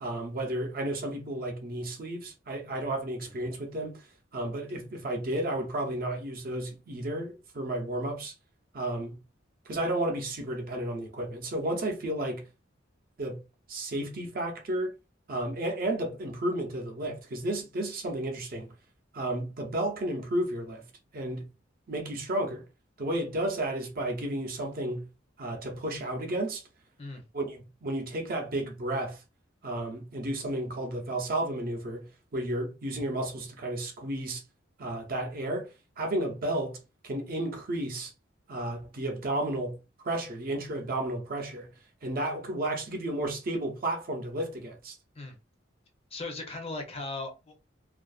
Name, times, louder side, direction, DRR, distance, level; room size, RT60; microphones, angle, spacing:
voice 1, 0.0-4.1 4.3-8.3 8.7-9.2 9.7-12.5 13.2-13.4 13.7-14.9 15.3-18.7 19.1-20.9 21.1-21.5 21.9-22.7 23.0-25.1 25.4-26.6 27.3-29.2 29.6-34.4 34.8-38.1 38.5-39.8 40.0-41.7 42.0-45.0, right 1 dB, 50° right, 0.6 m, -32 dB
voice 2, 46.1-47.7, left 2 dB, 30° left, 0.6 m, -38 dB
2.4 x 2.2 x 2.3 m
head